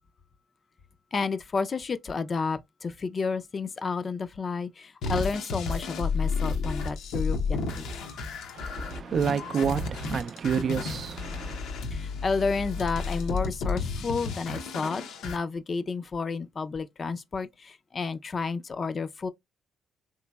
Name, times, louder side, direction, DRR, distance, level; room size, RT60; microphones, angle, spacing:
voice 1, 1.1-7.9 10.6-10.7 11.9-19.3, left 4 dB, 40° left, 0.4 m, -31 dB
sound 1, 5.0-15.4, left 4 dB, 85° left, 0.6 m, -32 dB
voice 2, 8.6-11.6, right 7 dB, 55° right, 0.3 m, -29 dB
3.3 x 2.9 x 2.2 m
cardioid pair, 90°, 0 cm